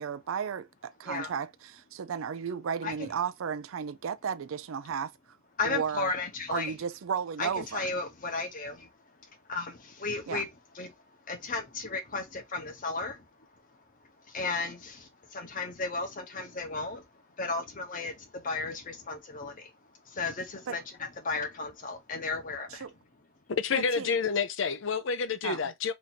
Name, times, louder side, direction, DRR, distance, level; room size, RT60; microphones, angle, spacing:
voice 1, 0.0-5.1 5.6-6.1 6.5-7.8 10.3-10.4 20.7-20.8 22.7-22.9 23.7-24.1 25.4-25.7, right 7 dB, 75° right, 0.4 m, -34 dB
voice 2, 5.6-6.8 7.4-8.9 9.5-10.5 10.7-11.0 11.3-13.3 14.3-19.7 20.0-22.9, left 3 dB, 40° left, 0.9 m, -34 dB
voice 3, 23.5-25.9, left 5 dB, 60° left, 0.5 m, -29 dB
3.0 x 2.6 x 4.2 m
head